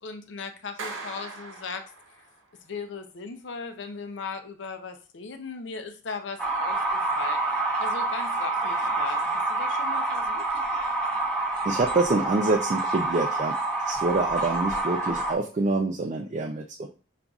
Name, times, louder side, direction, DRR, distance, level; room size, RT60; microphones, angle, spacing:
voice 1, 0.0-1.8 2.6-7.4 7.8-10.4, left 4 dB, 70° left, 6 dB, 0.5 m, -38 dB
Clapping, 0.8-2.4, right 3 dB, 75° right, 0.8 m, -40 dB
sound 1, 6.4-15.3, right 2 dB, 5° left, 0.9 m, -27 dB
voice 2, 11.6-13.5 13.8-16.9, right 3 dB, 35° right, 2 dB, 0.3 m, -26 dB
5.4 x 2.5 x 2.3 m, 0.36 s
head